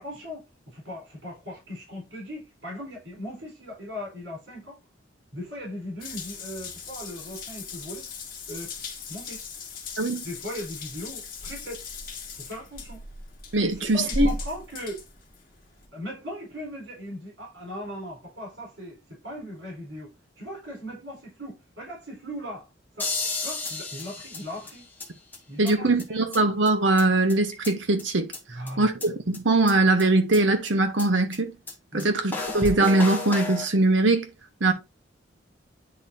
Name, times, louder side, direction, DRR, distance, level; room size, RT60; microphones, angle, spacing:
voice 1, 0.0-4.8 5.3-8.1 8.5-8.7 9.1-9.4 10.2-11.9 12.3-13.0 13.6-15.0 15.9-22.7 22.9-23.1 23.4-24.9 25.5-26.2 28.5-28.9 31.9-32.1, left 1 dB, 75° right, 4.4 m, -38 dB
Water tap faucet / Bathtub (filling or washing) / Drip, 6.0-15.8, left 2 dB, 50° left, 1.8 m, -37 dB
voice 2, 13.5-14.3 25.6-31.5 31.9-34.3 34.6-34.7, right 2 dB, 90° right, 1.2 m, -22 dB
sound 1, 23.0-25.1 25.3-25.4 25.7-25.8 26.0-26.1 26.3-26.4 26.7-26.8 27.0-27.1 27.3-28.0 28.3-28.4 28.7-28.8 29.0-29.1 29.3-29.4 29.7-29.8 30.0-30.1 30.3-30.4 30.7-30.8 31.0-31.1 31.3-31.4 31.7-31.8 32.0-32.1 32.3-33.7, left 3 dB, 10° left, 1.4 m, -32 dB
9.8 x 4.0 x 2.7 m
head